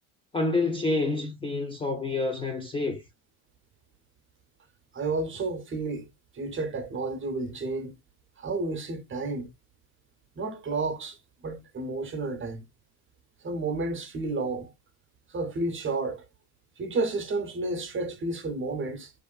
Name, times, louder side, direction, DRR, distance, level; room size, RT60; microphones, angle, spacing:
voice 1, 0.3-3.0, left 3 dB, 15° left, 0.4 m, -28 dB
voice 2, 4.9-6.1 6.3-7.9 8.4-9.5 10.4-11.2 11.4-12.6 13.4-14.7 15.3-16.2 16.8-19.1, right 3 dB, 30° right, 0.7 m, -31 dB
2.5 x 2.5 x 2.3 m
hypercardioid pair, 75°, 41 cm